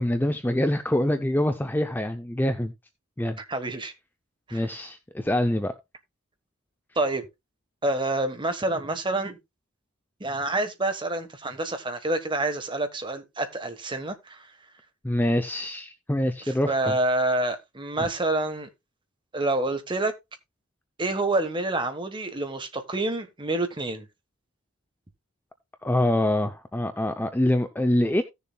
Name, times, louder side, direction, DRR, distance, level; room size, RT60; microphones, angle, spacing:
voice 1, 0.0-2.7 3.2-3.4 4.5-5.7 15.0-17.0 18.0-18.1 25.8-28.2, left 1 dB, 10° left, 0.5 m, -25 dB
voice 2, 3.4-3.9 4.5-4.8 6.9-7.2 7.8-9.4 10.2-14.5 16.4-18.7 19.3-20.1 21.0-24.1, right 2 dB, 20° right, 1.2 m, -27 dB
17.0 x 6.9 x 2.3 m
head